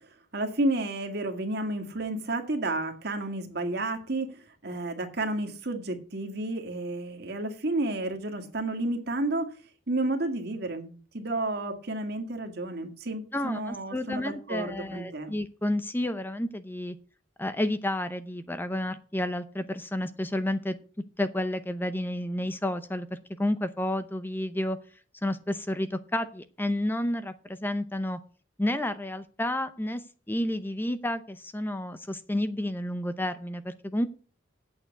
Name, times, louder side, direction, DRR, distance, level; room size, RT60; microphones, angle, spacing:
voice 1, 0.3-9.5 9.9-15.3, right 2 dB, 60° right, 5 dB, 1.9 m, -31 dB
voice 2, 13.3-17.0 17.4-20.8 21.2-23.1 23.4-24.8 25.2-28.2 28.6-30.0 30.3-34.1, left 1 dB, 10° left, 11 dB, 0.6 m, -30 dB
8.5 x 6.9 x 8.1 m, 0.39 s
head